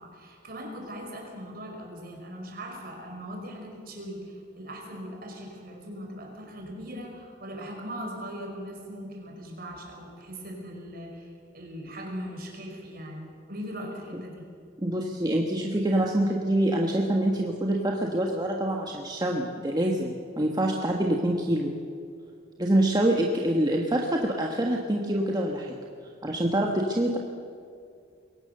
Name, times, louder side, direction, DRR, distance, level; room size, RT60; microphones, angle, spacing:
voice 1, 0.0-14.4, equal, 50° right, 1 dB, 4.8 m, -40 dB
voice 2, 14.8-21.7 22.6-25.7 26.2-27.2, right 1 dB, 20° right, 0 dB, 1.4 m, -25 dB
22.5 x 18.0 x 6.7 m, 2.3 s
head